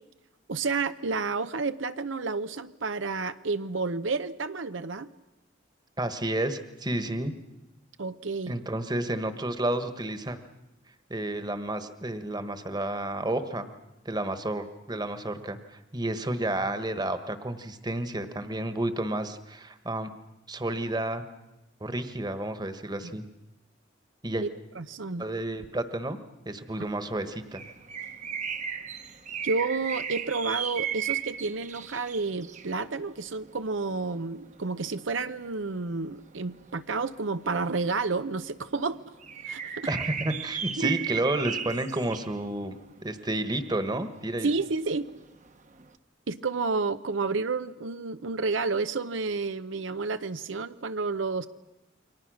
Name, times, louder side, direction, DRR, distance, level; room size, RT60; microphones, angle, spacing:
voice 1, 0.5-5.1 8.0-8.5 24.4-24.5 24.8-25.3 29.4-39.0 39.5-39.9 40.8-40.9 44.4-45.1 46.3-51.5, right 4 dB, 85° right, 11 dB, 0.8 m, -30 dB
voice 2, 6.0-7.3 8.5-10.4 11.1-13.7 14.0-20.1 20.5-21.2 21.8-23.2 24.2-24.4 25.2-26.2 26.4-27.6 39.9-42.8 43.0-44.5, right 1 dB, 20° right, 10 dB, 1.4 m, -31 dB
sound 1, 26.8-45.9, right 8 dB, 40° right, 1.1 m, -36 dB
29.0 x 23.5 x 6.4 m, 0.98 s
head